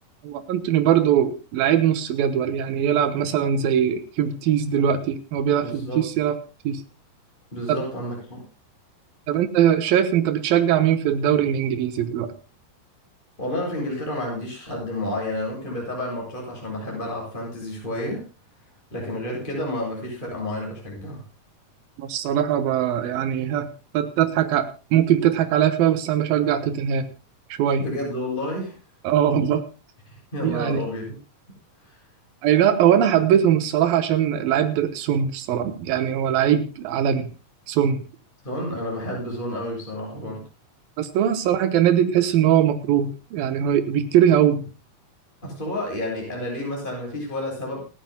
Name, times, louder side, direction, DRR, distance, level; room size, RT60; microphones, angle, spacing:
voice 1, 0.2-6.4 6.6-6.8 7.7-7.8 9.3-12.3 22.0-27.1 27.6-27.9 29.0-29.6 30.4-30.8 32.4-37.3 37.7-38.0 41.0-44.7, right 9 dB, 85° right, 10 dB, 2.9 m, -21 dB
voice 2, 5.6-6.1 7.5-8.4 13.4-18.3 18.9-21.2 27.8-28.7 30.1-31.2 31.9-32.0 38.4-40.4 45.4-47.8, left 1 dB, 15° left, -1 dB, 7.8 m, -30 dB
29.0 x 10.0 x 2.2 m, 0.30 s
omnidirectional pair, 4.0 m